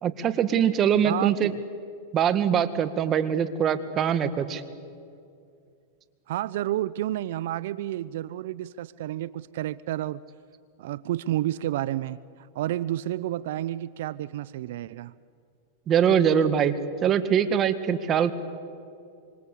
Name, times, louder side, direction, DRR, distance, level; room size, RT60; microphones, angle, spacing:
voice 1, 0.0-1.5 2.1-4.6 15.9-16.7 17.0-18.3, right 8 dB, 30° right, 11 dB, 1.8 m, -23 dB
voice 2, 1.1-1.6 6.3-10.2 10.8-15.1, right 13 dB, 70° right, 18 dB, 0.6 m, -30 dB
26.0 x 25.0 x 8.4 m, 2.4 s
hypercardioid pair, 115°, 0 cm